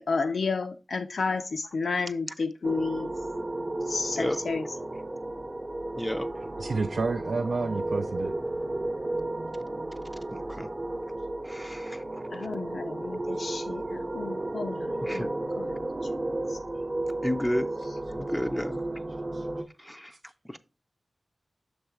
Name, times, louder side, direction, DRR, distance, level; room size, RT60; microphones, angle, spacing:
voice 1, 0.0-3.1 3.9-4.6 12.3-15.3 15.6-15.9 16.5-16.6, left 4 dB, 90° left, 0.4 m, -31 dB
sound 1, 2.6-19.6, right 2 dB, 35° right, 0.7 m, -33 dB
voice 2, 5.9-6.3 10.3-10.7 11.4-12.2 15.0-15.3 17.2-17.7 18.1-18.8 19.8-20.2 20.4-20.6, equal, 5° left, 0.4 m, -32 dB
voice 3, 6.6-8.3 19.3-19.5, right 4 dB, 70° right, 0.4 m, -30 dB
7.0 x 3.1 x 4.7 m
wide cardioid pair, 90°, 0 cm